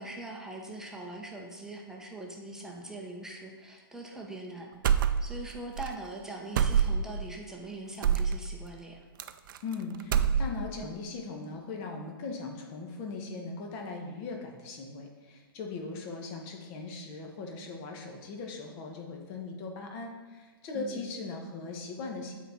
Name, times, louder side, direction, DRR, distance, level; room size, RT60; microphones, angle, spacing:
voice 1, 0.0-4.7 5.2-9.0 20.7-21.1, right 2 dB, 5° right, 0 dB, 0.8 m, -42 dB
sound 1, 4.8-5.5 5.8-5.9 6.6-7.2 8.0-8.4 9.2-9.7 10.0-10.8, right 7 dB, 60° right, 0.4 m, -25 dB
voice 2, 9.6-22.3, left 3 dB, 35° left, 2 dB, 1.3 m, -39 dB
8.1 x 4.1 x 4.6 m, 1.3 s
hypercardioid pair, 130°, 13 cm